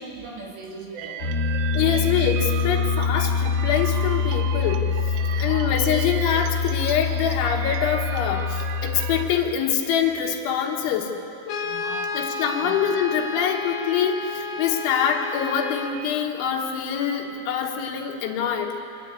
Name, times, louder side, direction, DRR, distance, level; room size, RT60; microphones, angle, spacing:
voice 1, 0.0-1.4 1.8-2.1 5.3-5.8 11.6-12.2 12.5-12.7, right 4 dB, 65° right, -1 dB, 4.3 m, -39 dB
sound 1, 1.0-9.3, right 10 dB, 80° right, 3.1 m, -36 dB
Piano, 1.2-9.3, left 5 dB, 20° left, 4.5 m, -25 dB
voice 2, 1.8-4.9 5.4-11.1 12.1-18.7, left 8 dB, 80° left, 2 dB, 3.7 m, -25 dB
Brass instrument, 11.5-16.0, left 3 dB, 60° left, 2.4 m, -31 dB
25.0 x 12.0 x 8.8 m, 2.7 s
omnidirectional pair, 5.4 m